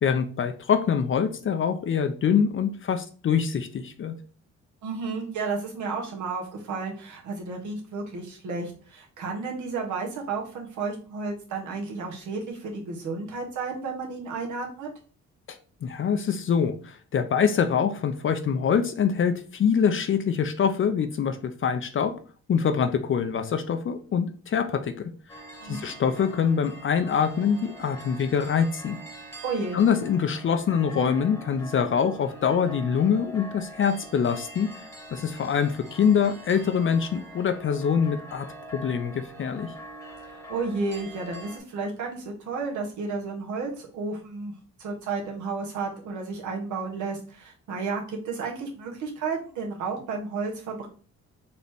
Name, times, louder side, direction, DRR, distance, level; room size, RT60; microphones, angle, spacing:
voice 1, 0.0-4.1 15.5-22.1 22.5-25.1 25.6-29.0 29.7-34.8 35.1-38.5 38.7-39.7, left 7 dB, 45° left, 8 dB, 0.5 m, -24 dB
voice 2, 4.8-14.9 25.6-25.9 29.4-29.8 40.3-44.5 44.8-50.9, right 4 dB, 75° right, 0 dB, 1.4 m, -32 dB
sound 1, 25.3-41.6, right 1 dB, 10° left, 1.2 m, -44 dB
4.0 x 2.9 x 3.5 m, 0.39 s
cardioid pair, 90°, 30 cm